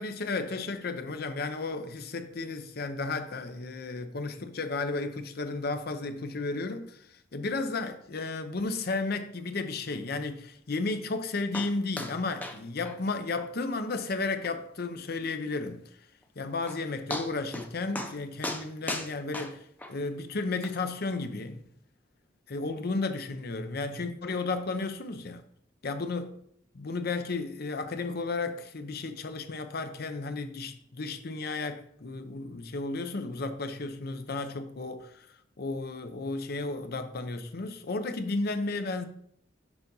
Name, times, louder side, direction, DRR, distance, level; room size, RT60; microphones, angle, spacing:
voice 1, 0.0-15.8 16.4-19.6 19.9-21.6 22.5-25.4 25.8-26.3 26.7-35.3 35.6-39.1, left 3 dB, 60° left, 0.7 m, -33 dB
sound 1, 11.5-11.7 12.0-12.1 12.4-12.6 12.8-13.0 13.4-13.5 13.9-14.0 14.4-14.5 16.2-16.3 16.7-16.8 17.1-17.7 17.9-18.1 18.4-19.9 20.6-20.7, left 1 dB, 10° left, 0.7 m, -36 dB
6.9 x 4.0 x 5.4 m
head